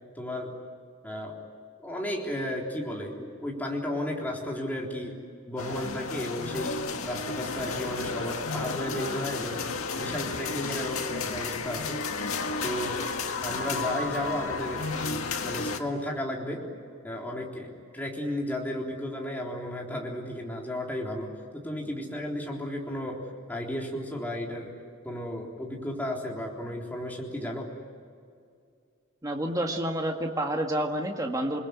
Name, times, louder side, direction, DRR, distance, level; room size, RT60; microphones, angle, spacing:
voice 1, 0.2-0.6 1.0-1.3 1.8-5.2 5.5-9.6 9.9-12.0 12.6-13.0 13.4-16.7 17.0-24.7 25.0-27.7, left 1 dB, 10° left, -2 dB, 3.7 m, -34 dB
sound 1, 5.6-15.8, left 4 dB, 90° left, 1.8 m, -32 dB
voice 2, 29.2-31.6, right 1 dB, 15° right, 2 dB, 1.8 m, -29 dB
29.0 x 21.5 x 9.5 m, 2.3 s
head